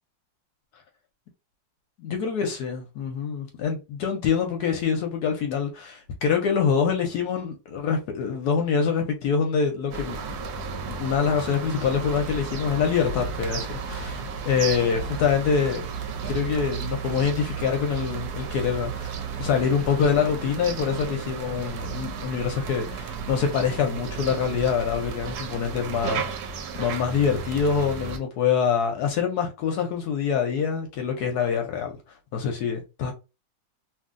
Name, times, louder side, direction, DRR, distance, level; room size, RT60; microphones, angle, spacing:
voice 1, 2.0-10.2 10.9-15.9 16.3-26.3 26.8-31.9 32.3-33.1, left 6 dB, 70° left, 1.0 m, -25 dB
sound 1, 9.9-28.2, right 5 dB, 70° right, 1.0 m, -33 dB
2.9 x 2.6 x 2.5 m
omnidirectional pair, 2.0 m